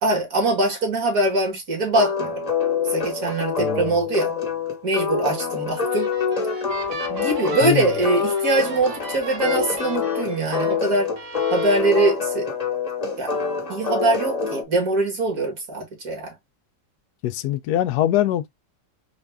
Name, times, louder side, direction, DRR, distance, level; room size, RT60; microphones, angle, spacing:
voice 1, 0.0-2.4 2.9-4.3 4.8-6.1 7.1-11.1 11.5-12.5 13.2-13.4 13.7-16.3, right 2 dB, 50° right, 1.8 m, -23 dB
sound 1, 1.9-14.6, left 5 dB, 25° left, 0.9 m, -26 dB
voice 2, 3.6-4.0 7.6-7.9 17.2-18.5, left 13 dB, 70° left, 0.9 m, -23 dB
sound 2, 5.7-10.8 11.2-11.8, right 3 dB, 65° right, 1.6 m, -36 dB
4.1 x 2.5 x 3.4 m
omnidirectional pair, 2.0 m